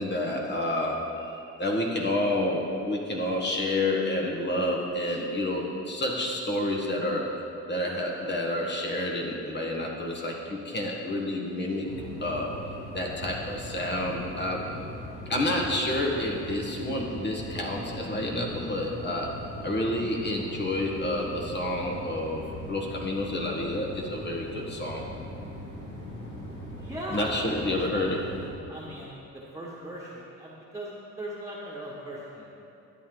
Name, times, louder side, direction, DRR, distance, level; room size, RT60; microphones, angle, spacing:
voice 1, 0.0-7.3 7.7-11.9 12.2-12.5 12.9-14.7 15.3-19.3 19.6-22.4 22.7-25.1 27.1-28.2, left 1 dB, 35° left, -1 dB, 1.5 m, -29 dB
sound 1, 11.8-28.5, equal, 85° left, 2.6 m, -40 dB
voice 2, 26.8-28.3 28.7-32.5, right 1 dB, 10° right, -7 dB, 1.6 m, -39 dB
12.0 x 8.9 x 3.9 m, 2.7 s
cardioid pair, 90°, 30 cm